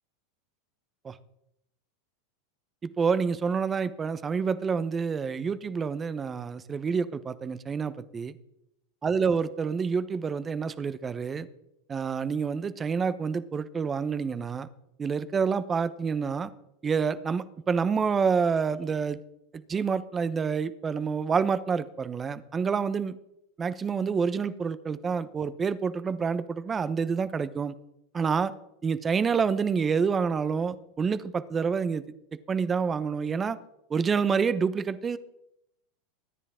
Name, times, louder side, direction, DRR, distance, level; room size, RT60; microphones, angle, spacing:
voice 1, 3.0-8.3 9.0-11.5 11.9-14.7 15.0-16.5 16.8-19.2 19.5-23.2 23.6-27.7 28.1-28.5 28.8-32.0 32.5-33.6 33.9-35.2, right 5 dB, 25° right, 15 dB, 0.9 m, -28 dB
23.0 x 10.0 x 3.7 m, 0.83 s
hypercardioid pair, 110°, 0 cm